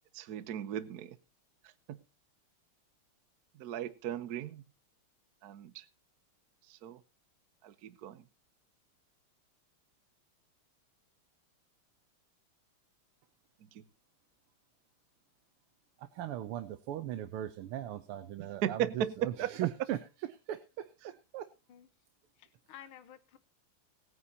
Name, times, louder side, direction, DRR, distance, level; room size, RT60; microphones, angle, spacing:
voice 1, 0.1-1.2 1.9-2.0 3.5-4.6 5.4-5.9 6.7-7.0 7.6-8.2 13.7-13.8 18.4-19.5, right 10 dB, 60° right, 1.1 m, -36 dB
voice 2, 16.0-20.0 20.5-21.5, right 12 dB, 85° right, 1.7 m, -38 dB
voice 3, 22.4-23.4, left 11 dB, 80° left, 1.7 m, -53 dB
19.0 x 9.6 x 2.8 m
omnidirectional pair, 2.4 m